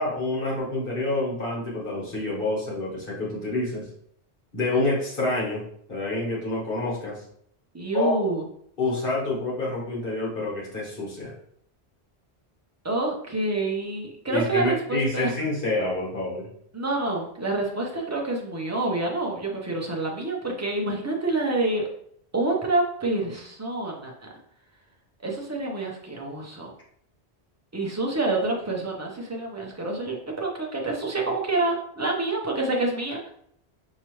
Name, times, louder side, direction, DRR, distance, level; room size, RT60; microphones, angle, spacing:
voice 1, 0.0-3.9 4.5-5.6 5.9-7.2 7.9-8.2 8.8-11.3 14.3-16.5, left 2 dB, 55° left, -4 dB, 1.5 m, -27 dB
voice 2, 7.7-8.4 12.8-15.3 16.7-21.8 22.3-24.1 25.2-26.7 27.7-33.3, right 2 dB, 20° right, -1 dB, 0.6 m, -27 dB
4.5 x 2.8 x 3.0 m, 0.67 s
omnidirectional pair, 1.1 m